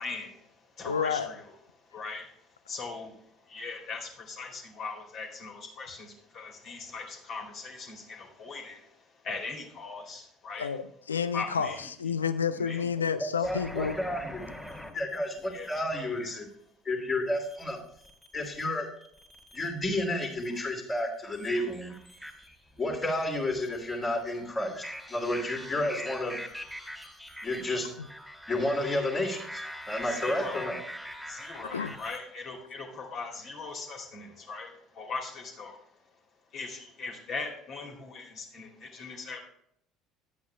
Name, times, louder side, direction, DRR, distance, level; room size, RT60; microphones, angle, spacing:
voice 1, 0.0-1.4 1.8-10.7 11.3-11.9 12.6-12.9 15.5-16.4 30.0-30.7 31.2-36.1 36.5-39.4, left 4 dB, 45° left, 1 dB, 2.4 m, -40 dB
voice 2, 0.8-1.3 10.6-14.0 28.0-28.1 31.7-31.9, left 6 dB, 80° left, 13 dB, 0.4 m, -30 dB
voice 3, 13.4-14.4 14.9-16.5 16.8-17.8 18.3-18.9 19.5-21.9 22.8-26.4 27.4-27.9 28.5-30.8, left 1 dB, 25° left, -1 dB, 2.4 m, -31 dB
sound 1, 13.4-15.8 17.3-18.6 19.0-19.8 20.2-32.2, equal, ahead, 2.2 m, -43 dB
10.0 x 8.2 x 3.3 m, 0.70 s
figure-of-eight pair, 60°, 0 cm